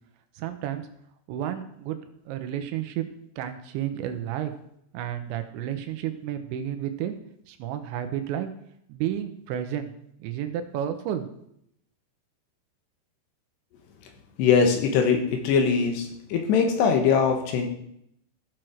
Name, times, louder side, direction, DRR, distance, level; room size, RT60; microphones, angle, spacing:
voice 1, 0.4-0.9 1.3-2.0 2.3-3.1 3.4-4.5 4.9-7.1 7.5-8.5 8.9-9.9 10.2-11.3, right 10 dB, 85° right, 8 dB, 3.2 m, -31 dB
voice 2, 14.4-17.7, left 6 dB, 75° left, 4 dB, 3.3 m, -22 dB
15.5 x 6.4 x 4.5 m, 0.73 s
omnidirectional pair, 5.2 m